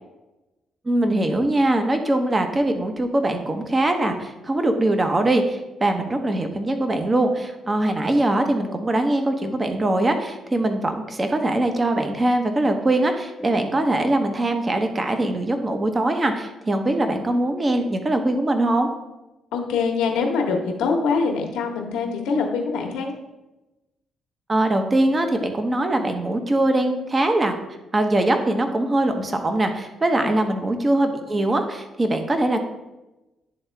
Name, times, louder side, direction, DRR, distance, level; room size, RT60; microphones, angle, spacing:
voice 1, 0.9-18.9 24.5-27.5 27.9-32.7, right 1 dB, 25° right, 6 dB, 0.8 m, -22 dB
voice 2, 19.5-23.1 30.2-30.3, left 4 dB, 90° left, 2 dB, 1.0 m, -24 dB
10.5 x 3.6 x 3.4 m, 1.0 s
cardioid pair, 90°, 0 cm